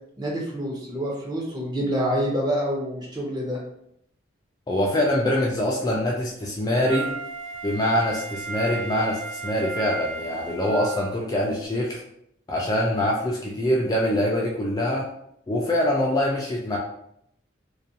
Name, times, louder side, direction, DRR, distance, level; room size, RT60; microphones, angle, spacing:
voice 1, 0.2-3.6, equal, 20° right, -3 dB, 0.6 m, -27 dB
voice 2, 4.7-7.1 7.6-12.0 12.5-15.1 15.5-16.8, left 1 dB, 20° left, -3 dB, 0.3 m, -24 dB
Wind instrument woodwind instrument, 6.9-11.1 11.7-11.8, right 4 dB, 90° right, 0.5 m, -34 dB
2.4 x 2.2 x 2.6 m, 0.73 s
head